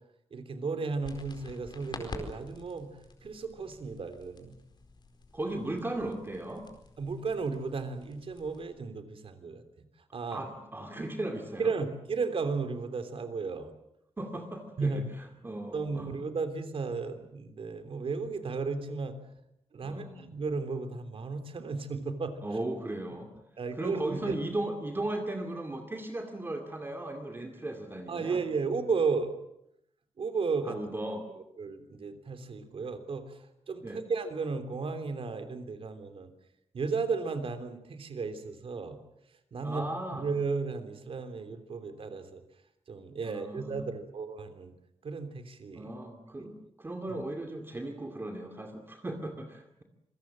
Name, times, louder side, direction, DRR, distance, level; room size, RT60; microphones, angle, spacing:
voice 1, 0.3-2.9 3.2-4.5 7.0-9.6 10.1-10.4 11.6-13.7 14.8-15.1 15.7-19.2 19.7-22.4 23.6-24.3 28.1-29.3 30.2-30.8 31.6-33.4 33.7-36.3 36.7-39.0 39.5-42.4 42.9-44.7 45.0-45.9, right 4 dB, 55° right, 9 dB, 3.2 m, -34 dB
sound 1, 1.0-8.6, left 3 dB, 45° left, 4.7 m, -48 dB
voice 2, 5.3-6.7 10.3-11.7 14.2-16.2 19.8-20.3 22.4-23.3 23.7-28.4 30.6-31.3 33.8-34.0 39.6-40.3 43.2-43.9 45.7-49.8, right 1 dB, 20° right, 4 dB, 2.4 m, -37 dB
27.0 x 22.5 x 7.5 m, 0.80 s
wide cardioid pair, 160°, 11 cm